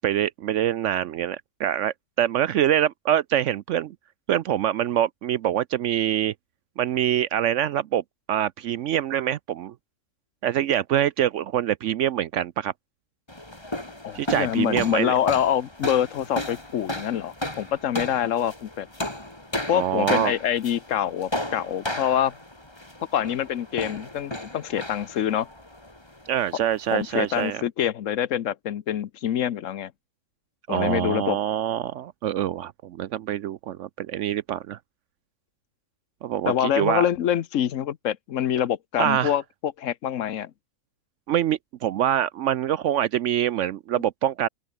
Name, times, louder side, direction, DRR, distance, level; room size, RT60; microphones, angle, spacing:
voice 1, 0.0-3.9 4.3-6.3 6.8-8.0 8.3-9.7 10.4-12.7 14.1-15.1 19.7-20.3 26.3-27.6 30.7-34.8 36.2-37.1 39.0-39.3 41.3-44.5, right 11 dB, 70° right, 0.9 m, -25 dB
sound 1, 13.3-27.5, left 1 dB, 20° left, 3.3 m, -35 dB
voice 2, 14.0-18.9 19.7-22.3 23.1-25.5 26.9-29.9 30.7-31.4 36.5-40.5, left 10 dB, 70° left, 1.2 m, -25 dB
open air
omnidirectional pair, 1.4 m